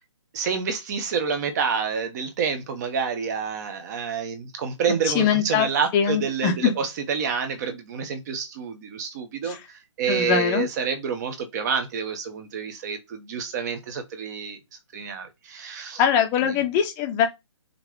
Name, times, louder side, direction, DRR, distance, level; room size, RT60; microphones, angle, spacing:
voice 1, 0.3-14.6 14.9-16.0 16.4-16.6, right 6 dB, 35° right, 1.4 m, -28 dB
voice 2, 5.1-5.7 5.9-6.7 9.5-9.6 10.1-10.7 16.0-17.3, left 8 dB, 20° left, 0.9 m, -22 dB
5.8 x 3.3 x 5.3 m
hypercardioid pair, 155°, 16 cm